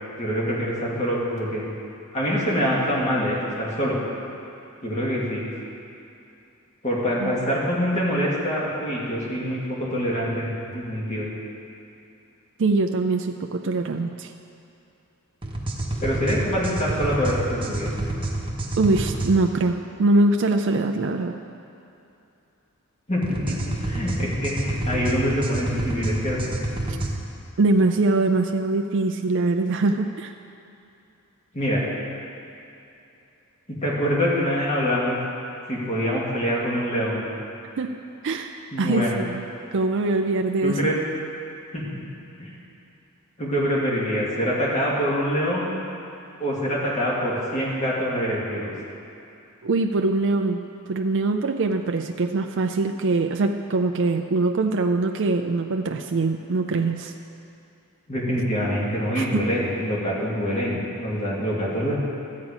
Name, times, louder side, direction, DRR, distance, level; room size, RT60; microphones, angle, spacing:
voice 1, 0.2-1.6 2.1-4.0 4.8-5.5 6.8-11.3 16.0-18.0 23.1-26.5 31.5-31.8 33.8-35.2 35.7-37.3 38.7-39.2 40.6-41.0 41.7-41.8 42.4-42.5 43.4-45.7 46.4-48.7 58.1-62.0, equal, 30° left, -5 dB, 2.2 m, -25 dB
voice 2, 12.6-14.3 18.8-21.4 27.6-30.3 37.8-37.9 38.2-39.4 39.7-40.9 49.6-50.6 50.9-57.1 59.2-59.4, right 3 dB, 55° right, 4 dB, 0.4 m, -23 dB
sound 1, 15.4-19.3 23.2-27.1, right 1 dB, 25° right, 1.2 m, -28 dB
13.0 x 8.4 x 4.9 m, 2.8 s
head